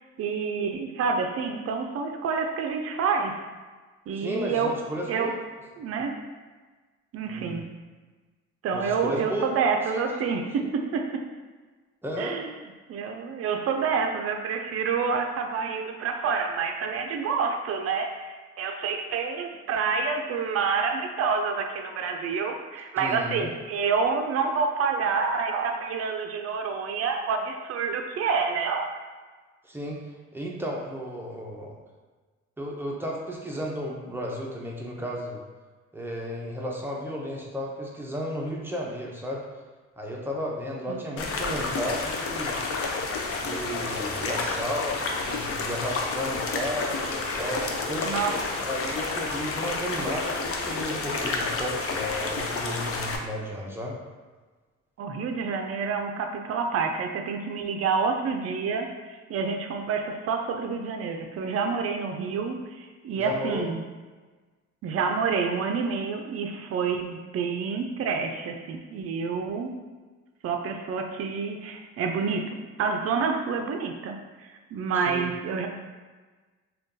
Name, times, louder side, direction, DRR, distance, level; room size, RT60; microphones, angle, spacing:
voice 1, 0.0-3.4 4.1-4.8 5.1-5.3 5.8-6.2 7.1-7.6 8.6-11.2 12.2-12.5 12.9-28.9 40.9-41.0 48.1-48.3 55.0-63.8 64.8-69.7 70.4-75.7, right 5 dB, 55° right, 4 dB, 0.4 m, -28 dB
voice 2, 4.1-5.3 7.3-7.5 8.7-9.6 9.9-10.0 12.0-12.4 23.0-23.5 29.6-30.0 30.3-31.8 32.6-35.4 35.9-39.4 40.0-42.6 43.4-48.1 48.6-54.0 63.2-63.6 75.0-75.3, equal, 5° right, -2 dB, 0.6 m, -33 dB
sound 1, 41.2-53.2, left 3 dB, 50° left, 0.5 m, -30 dB
2.5 x 2.3 x 3.7 m, 1.4 s
cardioid pair, 90°, 30 cm